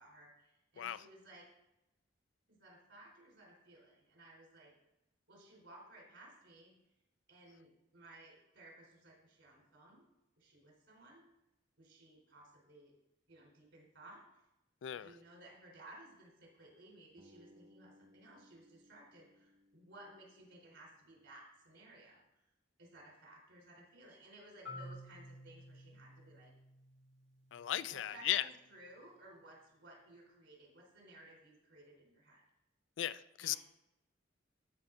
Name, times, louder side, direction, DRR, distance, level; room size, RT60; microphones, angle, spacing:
voice 1, 0.0-1.5 2.5-4.7 5.3-6.7 7.3-10.1 10.4-11.2 11.8-12.9 13.3-14.2 14.9-22.2 22.8-26.5 27.9-32.4 33.4-33.6, right 1 dB, 75° right, 3.6 m, -58 dB
voice 2, 14.8-15.1 27.5-28.5 33.0-33.6, left 12 dB, 70° left, 0.3 m, -36 dB
Bass guitar, 17.2-21.3, left 1 dB, 35° right, 1.0 m, -66 dB
Marimba xylophone, 24.6-28.5, left 1 dB, 90° right, 2.0 m, -53 dB
13.0 x 5.3 x 3.8 m
head